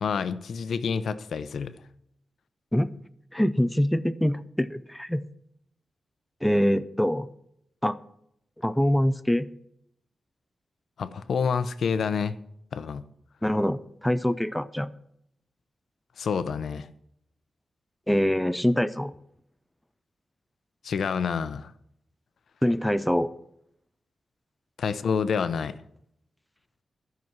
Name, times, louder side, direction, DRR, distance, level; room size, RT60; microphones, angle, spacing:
voice 1, 0.0-1.7 11.0-12.4 12.7-13.0 16.2-16.9 20.8-21.7 24.8-25.7, left 6 dB, 70° left, 13 dB, 0.6 m, -28 dB
voice 2, 3.3-5.2 6.4-7.3 7.8-8.0 8.6-9.5 13.4-14.9 18.1-19.1 22.6-23.3, equal, 5° left, 12 dB, 0.4 m, -24 dB
12.5 x 6.0 x 7.3 m, 0.75 s
wide cardioid pair, 175°, 0 cm